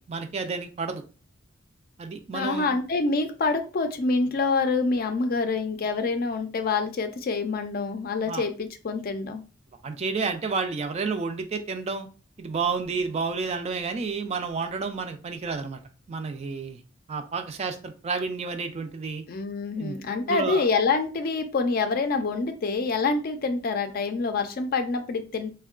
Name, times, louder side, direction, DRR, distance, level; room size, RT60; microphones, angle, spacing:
voice 1, 0.1-1.0 2.0-2.8 8.3-8.4 9.8-12.1 12.4-15.8 16.1-16.8 17.1-19.2 19.8-19.9 20.3-20.6, right 4 dB, 35° right, 7 dB, 0.3 m, -30 dB
voice 2, 2.3-9.4 19.3-25.5, left 4 dB, 50° left, 7 dB, 0.4 m, -26 dB
3.5 x 2.2 x 2.3 m, 0.35 s
head